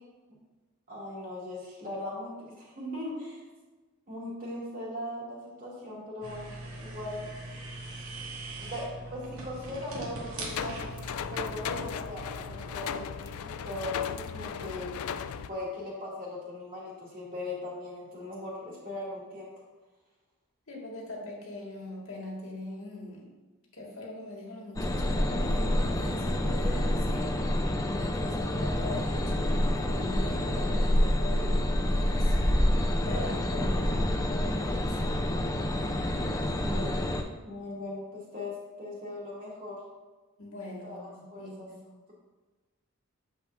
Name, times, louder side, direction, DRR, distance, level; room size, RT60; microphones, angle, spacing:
voice 1, 0.9-3.4 4.1-7.3 8.6-10.9 11.3-14.9 15.5-19.5 36.6-37.2 37.4-39.8 40.8-41.7, left 1 dB, 40° right, -5 dB, 2.5 m, -39 dB
sound 1, 6.2-13.0, right 2 dB, 85° right, 2.0 m, -42 dB
sound 2, 10.4-15.5, left 7 dB, 85° left, 0.4 m, -36 dB
voice 2, 20.7-23.3 23.7-27.4 28.0-32.4 32.7-35.4 40.4-41.8, left 1 dB, 70° left, -2 dB, 1.8 m, -41 dB
sound 3, 24.8-37.2, left 1 dB, 15° left, 0.5 m, -27 dB
8.5 x 7.3 x 2.6 m, 1.2 s
head